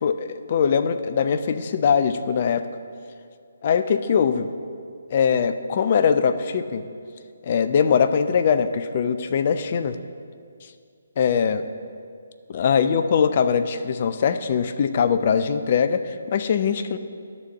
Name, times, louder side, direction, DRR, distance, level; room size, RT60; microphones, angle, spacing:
voice 1, 0.0-2.7 3.6-4.5 5.1-6.8 7.4-10.0 11.2-11.7 12.5-17.0, left 6 dB, 40° left, 10 dB, 0.5 m, -21 dB
12.5 x 4.3 x 6.3 m, 2.3 s
figure-of-eight pair, 145°, 0 cm